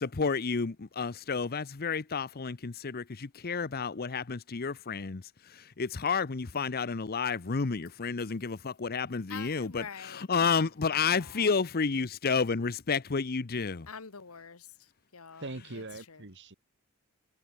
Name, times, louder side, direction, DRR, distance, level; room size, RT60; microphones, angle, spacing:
voice 1, 0.0-5.2 5.8-13.9, left 5 dB, 45° left, 0.7 m, -30 dB
voice 2, 9.3-10.6 11.1-11.5 13.9-15.5 15.7-15.8 16.1-16.2, left 6 dB, 75° left, 1.3 m, -46 dB
voice 3, 15.4-16.5, right 2 dB, 55° right, 2.1 m, -41 dB
head